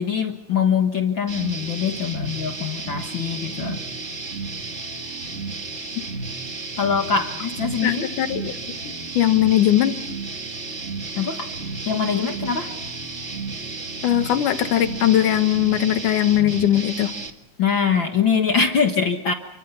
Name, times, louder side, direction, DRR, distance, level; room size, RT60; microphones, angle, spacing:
voice 1, 0.0-3.8 6.8-8.1 11.2-11.5 11.9-12.7 17.6-19.3, left 6 dB, 50° left, 4 dB, 1.9 m, -23 dB
sound 1, 1.3-17.3, right 3 dB, 30° right, 1.6 m, -32 dB
voice 2, 7.8-8.6 8.8-9.9 14.0-17.1, left 12 dB, 90° left, 9 dB, 2.9 m, -20 dB
30.0 x 25.0 x 5.6 m, 0.71 s
omnidirectional pair, 3.5 m